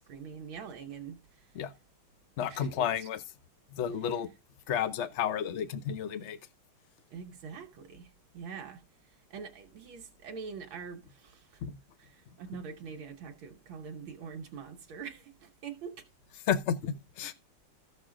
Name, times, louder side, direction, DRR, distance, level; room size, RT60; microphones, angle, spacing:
voice 1, 0.1-1.5 2.5-3.1 7.1-8.8 9.3-11.6 12.0-16.0, right 6 dB, 75° right, 1.7 m, -44 dB
voice 2, 2.4-3.2 3.7-4.3 4.7-6.4 11.6-11.8 16.5-17.3, left 8 dB, 70° left, 0.6 m, -31 dB
14.5 x 6.5 x 3.7 m
omnidirectional pair, 2.3 m